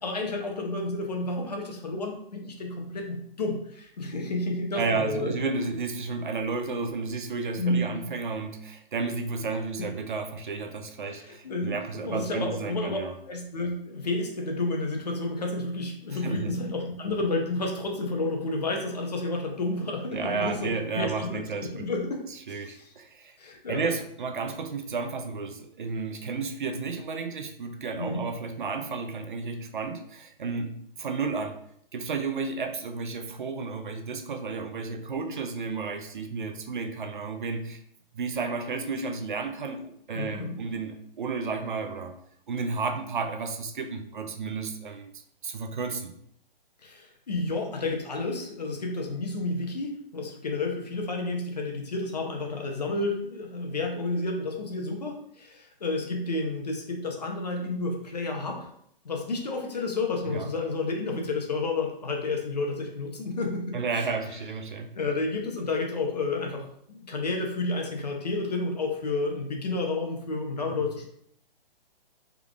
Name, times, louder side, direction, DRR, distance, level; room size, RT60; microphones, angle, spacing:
voice 1, 0.0-5.3 7.6-8.0 11.1-11.7 12.0-13.0 13.3-20.7 20.9-21.4 21.7-22.2 22.5-22.9 23.4-23.9 28.0-28.2 40.1-40.5 46.8-58.7 59.0-63.8 64.9-71.1, left 2 dB, 45° left, 2 dB, 0.7 m, -30 dB
voice 2, 4.7-13.1 16.1-16.5 20.1-21.9 22.3-23.4 23.7-31.6 31.9-37.8 38.1-42.1 42.5-45.1 45.4-46.1 60.3-60.5 63.7-64.9 70.7-70.8, right 4 dB, 55° right, 6 dB, 0.5 m, -32 dB
3.5 x 3.4 x 2.4 m, 0.68 s
hypercardioid pair, 180°, 29 cm